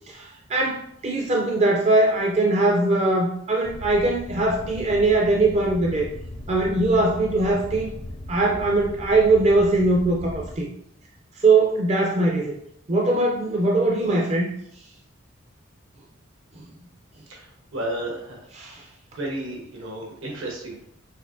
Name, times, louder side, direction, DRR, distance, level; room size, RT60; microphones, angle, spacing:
voice 1, 0.1-6.1 6.5-7.9 8.3-10.7 11.4-12.5 12.9-14.5 18.5-18.8, right 2 dB, 30° right, -1 dB, 0.4 m, -21 dB
sound 1, 3.6-10.6, left 1 dB, 30° left, 0.4 m, -38 dB
voice 2, 17.7-18.4 19.2-20.8, right 1 dB, 70° right, -2 dB, 1.1 m, -32 dB
6.3 x 2.9 x 2.6 m, 0.73 s
head